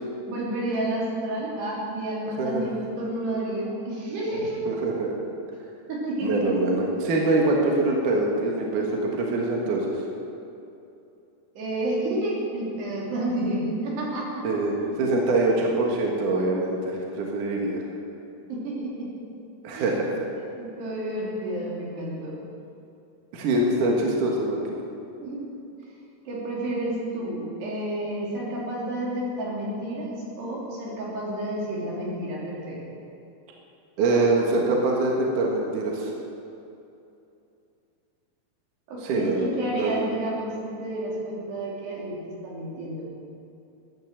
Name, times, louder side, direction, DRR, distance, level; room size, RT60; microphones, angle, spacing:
voice 1, 0.3-4.6 5.9-6.5 11.6-14.6 18.5-19.1 19.7-19.9 20.6-22.4 23.8-24.0 25.2-25.4 26.3-30.1 30.4-32.8 38.9-43.0, right 1 dB, 75° right, -5 dB, 5.1 m, -30 dB
voice 2, 4.7-5.1 6.2-9.9 14.4-17.8 19.6-20.1 23.3-24.6 34.0-36.1 39.0-39.5 39.7-40.0, right 2 dB, 60° right, -1 dB, 2.7 m, -24 dB
14.0 x 10.5 x 7.4 m, 2.7 s
omnidirectional pair, 4.8 m